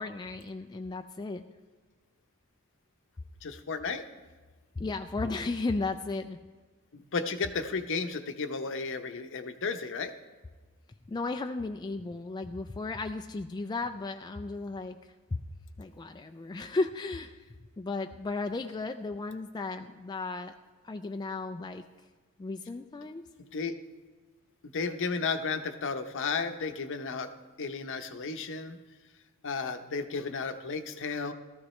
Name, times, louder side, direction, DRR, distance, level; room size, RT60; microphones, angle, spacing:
voice 1, 0.0-1.4 4.8-6.4 11.1-15.0 15.8-17.3 17.8-20.5 20.8-21.8 22.4-23.2, left 3 dB, 20° left, 6 dB, 0.3 m, -34 dB
voice 2, 3.4-4.0 6.9-10.1 23.4-23.7 24.6-27.3 27.6-28.8 29.4-31.3, left 4 dB, 60° left, 8 dB, 0.7 m, -33 dB
17.5 x 13.5 x 3.2 m, 1.3 s
head